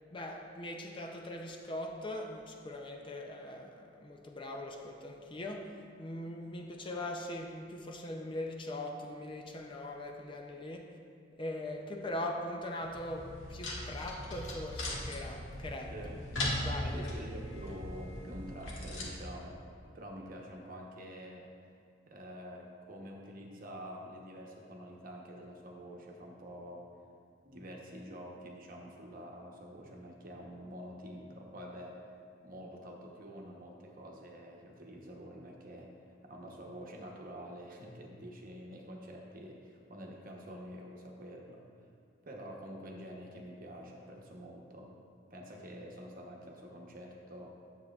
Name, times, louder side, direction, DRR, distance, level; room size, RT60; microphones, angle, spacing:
voice 1, 0.1-11.0 11.3-15.9 16.5-17.1 19.9-20.0, left 1 dB, 25° left, 0.5 m, -41 dB
sound 1, 12.8-19.1, left 1 dB, 80° left, 1.4 m, -39 dB
voice 2, 16.9-19.6 19.9-21.5 22.1-26.9 27.4-32.2 32.4-41.6 42.2-44.9 45.3-47.5, equal, 45° right, 0.9 m, -47 dB
9.7 x 7.6 x 2.4 m
head